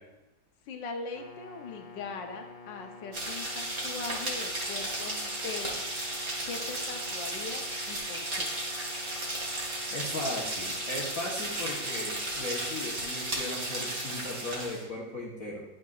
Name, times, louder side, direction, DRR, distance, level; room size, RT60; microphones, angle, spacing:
voice 1, 0.7-5.8 6.5-8.5, left 4 dB, 70° left, 4 dB, 1.4 m, -40 dB
sound 1, 1.1-14.8, left 4 dB, 90° left, 1.7 m, -48 dB
sound 2, 3.1-14.8, right 1 dB, 45° right, 2.1 m, -34 dB
voice 2, 9.9-15.6, left 1 dB, 50° left, -4 dB, 1.3 m, -37 dB
10.5 x 6.3 x 2.4 m, 0.99 s
omnidirectional pair, 2.1 m